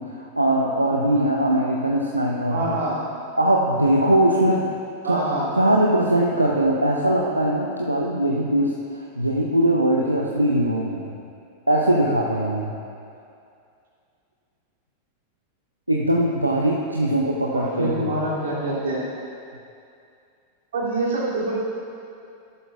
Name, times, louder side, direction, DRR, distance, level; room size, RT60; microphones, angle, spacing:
voice 1, 0.0-2.8 3.4-4.7 5.0-5.3 5.6-11.2 11.7-12.7 15.9-18.1, right 1 dB, 85° right, -1 dB, 0.6 m, -21 dB
voice 2, 2.5-3.0 5.0-5.5 17.5-19.0 20.7-21.5, right 2 dB, 60° right, -6 dB, 2.7 m, -25 dB
14.0 x 11.5 x 2.4 m, 2.5 s
figure-of-eight pair, 90°, 0 cm